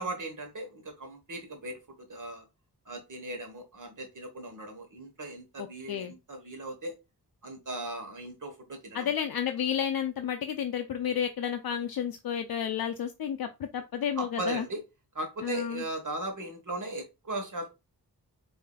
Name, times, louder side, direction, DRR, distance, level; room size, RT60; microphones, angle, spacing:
voice 1, 0.0-2.4 2.9-6.9 7.4-9.2 14.2-14.8 15.1-17.7, right 2 dB, 50° right, 5 dB, 1.2 m, -38 dB
voice 2, 5.6-6.1 8.9-14.7 15.4-15.8, left 8 dB, 65° left, 6 dB, 0.5 m, -31 dB
4.7 x 2.7 x 2.3 m, 0.25 s
wide cardioid pair, 60°, 40 cm